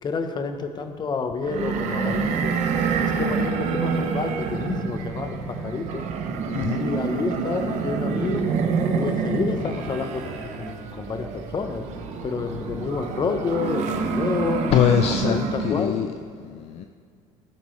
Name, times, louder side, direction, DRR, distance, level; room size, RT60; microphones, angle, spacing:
voice 1, 0.0-2.5 3.0-6.0 6.8-8.4 8.9-11.8 12.2-14.6 15.1-16.0, left 4 dB, 35° left, 7 dB, 1.0 m, -29 dB
sound 1, 1.4-16.0, right 5 dB, 70° right, 1.1 m, -27 dB
voice 2, 6.5-6.8 9.5-9.7 14.7-16.1 16.4-16.8, left 9 dB, 55° left, 7 dB, 0.5 m, -23 dB
15.0 x 8.8 x 3.3 m, 2.2 s
cardioid pair, 105°, 12 cm